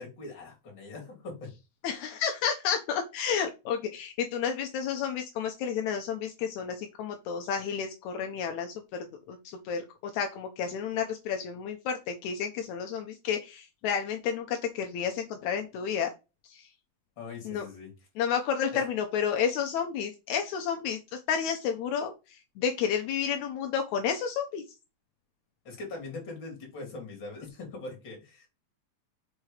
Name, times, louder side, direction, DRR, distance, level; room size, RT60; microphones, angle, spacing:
voice 1, 0.0-1.5 17.2-18.1 18.7-18.8 25.6-28.5, left 3 dB, 35° left, 0 dB, 3.3 m, -41 dB
voice 2, 1.8-8.7 9.3-9.4 9.6-16.1 16.5-16.6 17.4-17.6 18.2-21.0 21.3-24.6, left 7 dB, 75° left, 4 dB, 1.7 m, -31 dB
6.4 x 4.3 x 4.9 m, 0.28 s
omnidirectional pair, 4.2 m